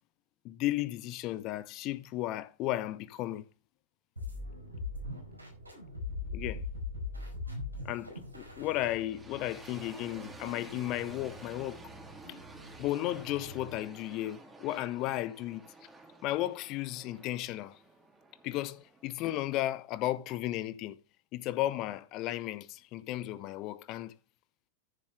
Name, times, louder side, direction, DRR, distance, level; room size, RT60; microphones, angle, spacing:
voice 1, 0.4-3.5 6.3-6.6 7.8-11.8 12.8-15.7 16.2-17.8 18.4-21.0 21.3-24.2, left 15 dB, 40° left, 0.9 m, -34 dB
sound 1, 4.2-13.9, left 3 dB, 85° right, 4.6 m, -42 dB
sound 2, 8.8-19.7, right 2 dB, 10° right, 2.6 m, -52 dB
14.0 x 7.3 x 3.4 m
figure-of-eight pair, 90°, 0 cm